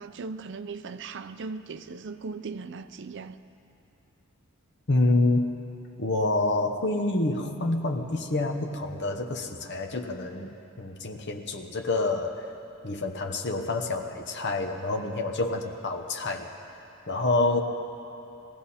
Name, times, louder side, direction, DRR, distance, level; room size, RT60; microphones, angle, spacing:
voice 1, 0.0-3.4, right 4 dB, 55° right, 0.5 m, -38 dB
voice 2, 4.9-5.5 6.0-12.5 12.8-16.5 17.1-17.6, left 2 dB, 55° left, 1.0 m, -27 dB
20.5 x 15.5 x 4.3 m
head